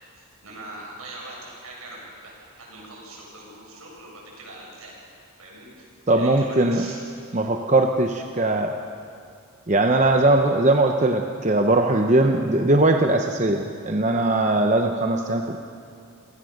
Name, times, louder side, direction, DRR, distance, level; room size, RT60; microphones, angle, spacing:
voice 1, 0.1-5.1 5.4-5.7 6.1-7.0, right 2 dB, 75° right, -3 dB, 7.1 m, -41 dB
voice 2, 6.1-6.8 7.3-8.7 9.7-15.6, right 2 dB, 30° right, 4 dB, 0.8 m, -20 dB
28.0 x 17.5 x 6.6 m, 2.4 s
head